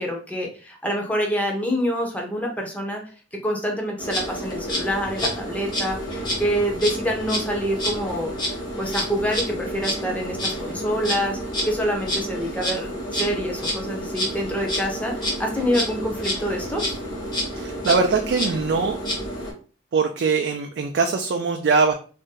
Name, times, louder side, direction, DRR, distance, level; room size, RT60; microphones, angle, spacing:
voice 1, 0.0-3.0 3.4-8.3 8.8-11.4 11.6-17.0, equal, 10° left, 1 dB, 0.6 m, -26 dB
Insect, 4.0-19.5, equal, 25° left, 0.9 m, -29 dB
voice 2, 17.5-19.0 19.9-21.9, right 4 dB, 65° right, 4 dB, 0.3 m, -22 dB
2.6 x 2.1 x 3.7 m, 0.39 s
head